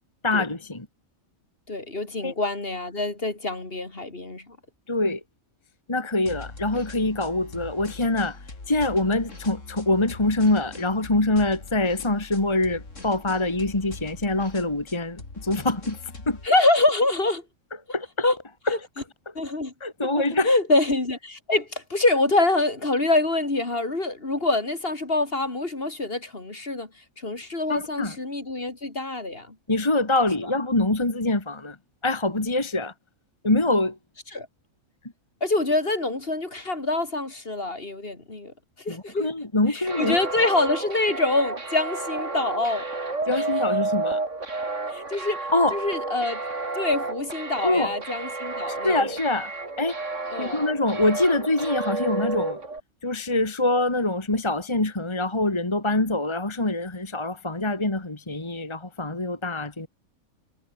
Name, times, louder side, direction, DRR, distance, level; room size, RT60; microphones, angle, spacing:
voice 1, 0.2-0.9 2.2-2.3 4.9-5.2 5.9-8.4 8.7-16.0 16.3-16.4 17.9-18.1 19.8-20.5 27.7-28.2 29.7-31.8 32.0-32.9 33.4-34.0 38.9-40.5 43.3-44.2 45.5-45.8 47.6-47.9 48.7-49.5 49.8-50.0 50.4-52.6 53.0-59.9, left 2 dB, 20° left, 2.0 m, -24 dB
voice 2, 1.7-4.6 16.4-17.4 18.2-18.4 18.7-18.8 19.4-19.7 20.2-26.9 27.2-29.6 34.3-34.5 35.4-38.5 38.8-39.3 39.7-42.9 43.3-43.4 44.9-46.4 46.8-49.1 50.3-50.6, left 2 dB, 45° left, 3.4 m, -25 dB
sound 1, 6.3-16.5, left 3 dB, 65° left, 4.0 m, -42 dB
sound 2, 39.9-52.8, right 3 dB, 60° right, 3.9 m, -31 dB
omnidirectional pair, 1.4 m